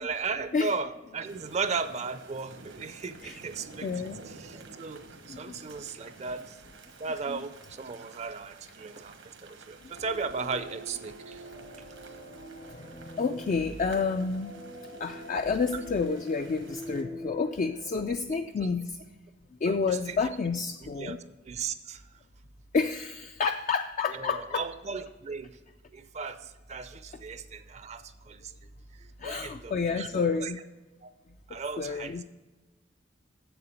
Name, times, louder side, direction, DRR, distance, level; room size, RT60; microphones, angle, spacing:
voice 1, 0.0-6.6 7.0-11.4 17.9-18.0 18.6-18.7 19.7-20.2 20.8-21.2 21.4-22.0 24.1-25.5 25.9-28.5 29.0-30.5 31.0-31.1 31.5-32.2, right 5 dB, 35° right, 11 dB, 0.5 m, -36 dB
sound 1, 1.2-17.0, right 3 dB, 80° right, 1.2 m, -51 dB
voice 2, 3.8-4.2 5.3-5.6 7.3-7.4 13.2-14.6 15.0-19.0 19.6-21.2 22.7-24.7 29.2-30.6 31.8-32.2, left 5 dB, 40° left, 7 dB, 0.3 m, -29 dB
sound 2, 9.9-17.9, equal, 85° left, 3.4 m, -44 dB
7.7 x 6.9 x 5.1 m, 1.2 s
head